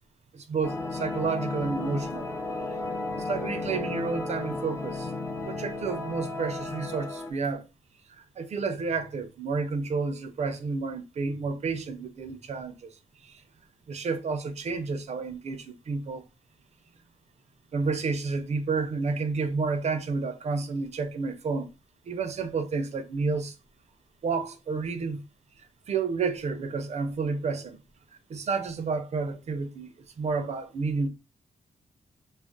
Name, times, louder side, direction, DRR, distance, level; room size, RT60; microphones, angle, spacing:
voice 1, 0.3-2.3 3.2-5.1 5.4-7.7 8.1-13.0 13.2-13.4 13.9-16.2 17.7-21.7 22.1-23.5 24.2-25.2 25.6-27.8 28.3-31.1, right 4 dB, 55° right, 0.5 m, -30 dB
sound 1, 0.6-7.3, left 2 dB, 20° left, 0.5 m, -34 dB
2.4 x 2.0 x 3.7 m
cardioid pair, 95°, 13 cm